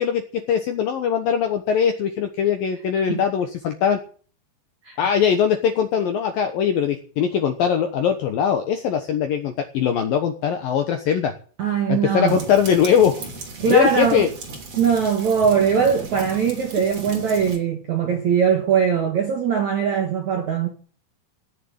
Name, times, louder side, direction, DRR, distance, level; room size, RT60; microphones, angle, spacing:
voice 1, 0.0-4.0 5.0-11.3 11.9-13.2 13.7-14.3, left 8 dB, 70° left, 2.2 m, -21 dB
voice 2, 11.6-12.5 13.6-14.2 14.8-20.7, right 7 dB, 65° right, 1.8 m, -21 dB
sound 1, 12.3-17.6, right 3 dB, 35° right, 3.9 m, -36 dB
17.5 x 6.8 x 9.5 m
omnidirectional pair, 5.7 m